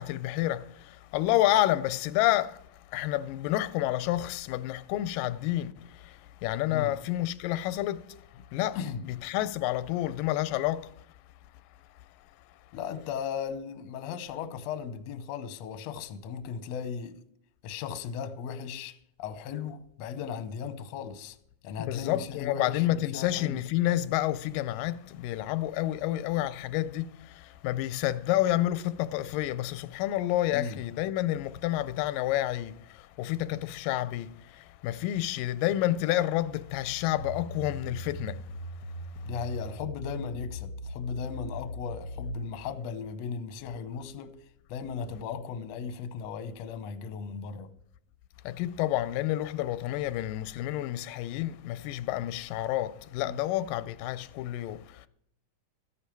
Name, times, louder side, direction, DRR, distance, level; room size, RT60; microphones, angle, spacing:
voice 1, 0.0-2.6 2.9-8.2 8.5-8.8 9.0-11.0 21.8-38.5 48.5-55.1, left 14 dB, 90° left, 2.2 m, -29 dB
voice 2, 8.7-9.0 12.7-17.2 17.6-21.4 21.6-23.6 30.5-30.8 39.3-44.4 44.7-47.7 53.2-53.4, left 6 dB, 70° left, 1.7 m, -37 dB
sound 1, 37.2-42.5, equal, 85° right, 0.9 m, -39 dB
14.0 x 9.9 x 4.6 m
omnidirectional pair, 3.8 m